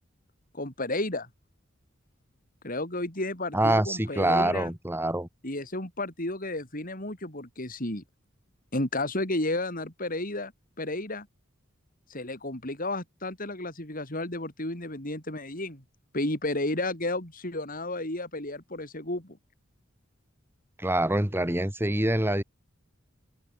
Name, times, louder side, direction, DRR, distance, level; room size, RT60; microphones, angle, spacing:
voice 1, 0.5-1.3 2.6-4.7 5.4-8.0 8.7-10.5 10.8-11.3 12.1-15.8 16.1-19.4, left 2 dB, 45° left, 5.2 m, -32 dB
voice 2, 3.5-5.3 20.8-22.4, right 1 dB, 10° right, 2.5 m, -25 dB
open air
head